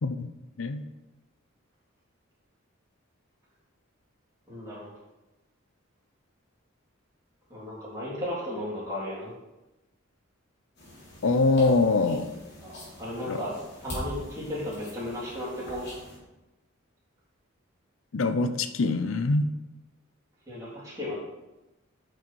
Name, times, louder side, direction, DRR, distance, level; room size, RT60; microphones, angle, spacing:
voice 1, 4.5-4.9 7.5-9.3 12.6-12.7 13.0-13.5 13.8-15.9 20.5-21.1, left 1 dB, 15° right, -8 dB, 3.5 m, -34 dB
sound 1, 10.8-16.2, equal, 55° left, 3.3 m, -42 dB
voice 2, 11.2-12.3 13.3-13.4 18.1-19.5, left 3 dB, 70° left, 9 dB, 0.6 m, -24 dB
8.7 x 6.3 x 4.6 m, 1.0 s
head